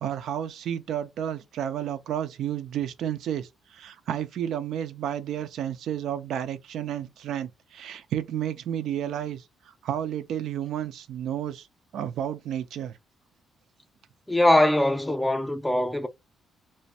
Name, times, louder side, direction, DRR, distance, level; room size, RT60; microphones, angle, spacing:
voice 1, 0.0-11.7 11.9-13.0, right 10 dB, 75° right, 0.4 m, -31 dB
voice 2, 14.3-16.1, left 1 dB, 10° left, 0.4 m, -22 dB
2.5 x 2.1 x 2.6 m
cardioid pair, 90°, 0 cm